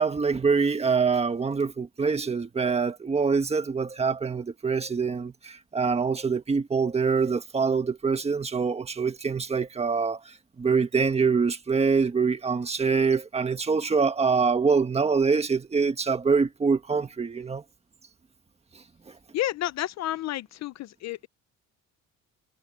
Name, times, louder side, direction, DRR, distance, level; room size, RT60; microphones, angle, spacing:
voice 1, 0.0-17.6, right 5 dB, 20° right, 1.5 m, -25 dB
voice 2, 19.3-21.3, left 14 dB, 55° left, 0.6 m, -31 dB
cardioid pair, 155°, 32 cm